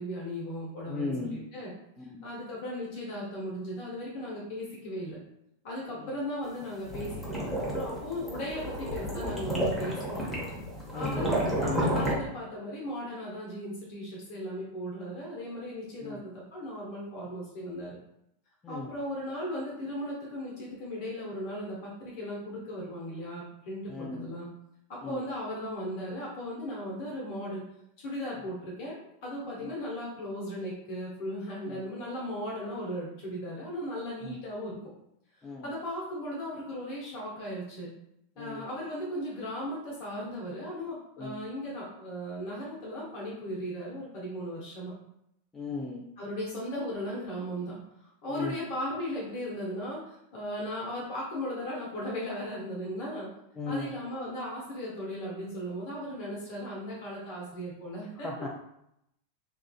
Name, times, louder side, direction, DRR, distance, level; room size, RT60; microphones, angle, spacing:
voice 1, 0.0-1.7 2.2-5.2 5.6-10.3 10.9-18.0 18.7-24.5 24.9-27.6 28.0-34.8 35.6-37.9 38.4-44.9 46.2-53.3 53.6-58.3, equal, 45° left, -4 dB, 0.7 m, -37 dB
voice 2, 0.9-1.5 2.0-2.3 6.0-6.1 10.9-11.4 16.0-16.2 18.6-18.9 23.9-24.3 25.0-25.2 29.6-29.7 31.7-31.8 34.2-34.3 35.4-35.7 38.4-38.7 41.2-41.4 45.5-46.0 48.3-48.6 53.6-54.0 58.2-58.5, left 3 dB, 15° left, -1 dB, 0.3 m, -37 dB
sound 1, 6.6-12.2, equal, ahead, 0.8 m, -31 dB
2.7 x 2.4 x 2.2 m, 0.79 s
figure-of-eight pair, 90°, 0 cm